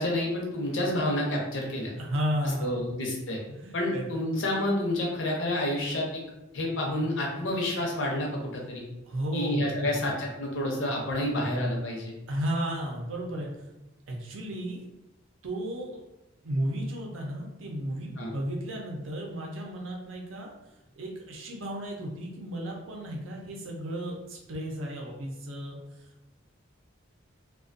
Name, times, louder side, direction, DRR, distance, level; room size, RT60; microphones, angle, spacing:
voice 1, 0.0-1.9 2.6-3.4 3.7-6.2 6.5-8.8 9.3-12.1 18.2-18.3, left 1 dB, 70° left, -1 dB, 0.6 m, -29 dB
voice 2, 2.0-2.8 3.5-4.2 9.0-10.1 12.3-13.5 14.1-14.8 15.4-16.0 16.4-20.5 21.0-25.8, equal, 80° right, 0 dB, 0.6 m, -33 dB
2.4 x 2.2 x 2.5 m, 0.94 s
head